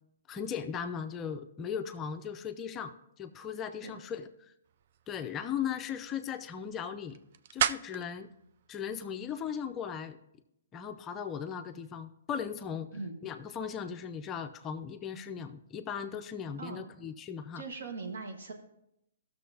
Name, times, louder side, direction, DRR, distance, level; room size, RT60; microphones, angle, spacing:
voice 1, 0.3-4.3 5.1-7.2 7.5-8.3 8.7-10.2 10.7-12.9 13.2-17.6, left 7 dB, 20° left, 7 dB, 0.5 m, -37 dB
sound 1, 4.6-9.8, right 9 dB, 50° right, 0.3 m, -38 dB
voice 2, 17.5-18.5, right 4 dB, 75° right, 4 dB, 1.5 m, -40 dB
14.0 x 6.5 x 2.8 m, 0.79 s
hypercardioid pair, 145°, 0 cm